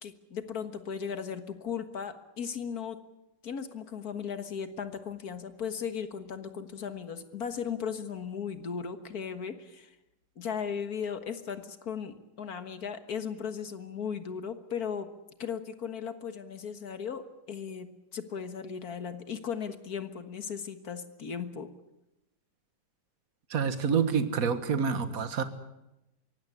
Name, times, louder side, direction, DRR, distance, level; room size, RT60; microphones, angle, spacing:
voice 1, 0.0-3.0 3.4-9.9 10.4-15.1 15.4-21.7, left 7 dB, 60° left, 10 dB, 1.9 m, -37 dB
voice 2, 23.5-25.4, right 6 dB, 55° right, 11 dB, 1.9 m, -27 dB
23.5 x 17.0 x 9.7 m, 0.93 s
omnidirectional pair, 1.9 m